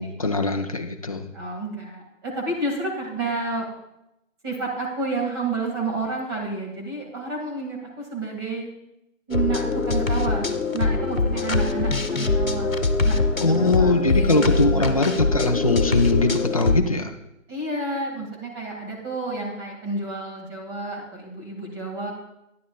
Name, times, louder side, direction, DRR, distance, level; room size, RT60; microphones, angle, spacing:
voice 1, 0.0-1.2 13.4-17.1, left 3 dB, 30° left, 5 dB, 0.6 m, -21 dB
voice 2, 1.3-3.7 4.4-8.7 9.3-15.0 17.5-22.1, right 3 dB, 20° right, -1 dB, 2.0 m, -30 dB
sound 1, 9.3-16.8, left 3 dB, 90° left, 1.1 m, -23 dB
12.0 x 10.5 x 2.3 m, 0.85 s
figure-of-eight pair, 150°, 40 cm